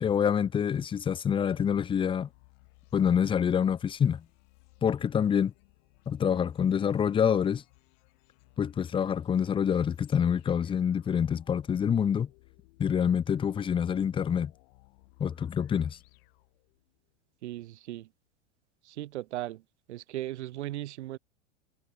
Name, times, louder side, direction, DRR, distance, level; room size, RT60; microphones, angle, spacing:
voice 1, 0.0-2.3 2.9-4.2 4.8-5.5 6.1-7.6 8.6-12.3 12.8-14.5 15.2-16.0, left 8 dB, 15° left, 0.5 m, -26 dB
sound 1, 1.5-17.1, left 30 dB, 55° left, 3.3 m, -60 dB
voice 2, 17.4-18.1 18.8-19.6 19.9-21.2, right 15 dB, 70° right, 1.4 m, -37 dB
hypercardioid pair, 100°, 35 cm